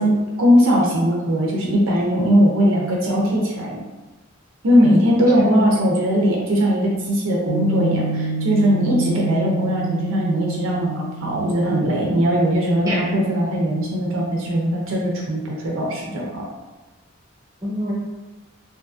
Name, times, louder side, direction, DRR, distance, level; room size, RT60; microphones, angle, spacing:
voice 1, 0.0-3.8 4.6-16.4, equal, 65° right, -3 dB, 0.5 m, -19 dB
voice 2, 4.8-5.7 12.8-13.0 17.6-17.9, left 1 dB, 15° right, -7 dB, 0.8 m, -23 dB
Piano, 7.5-14.1, right 2 dB, 75° left, 0.3 m, -30 dB
2.5 x 2.4 x 2.3 m, 1.2 s
head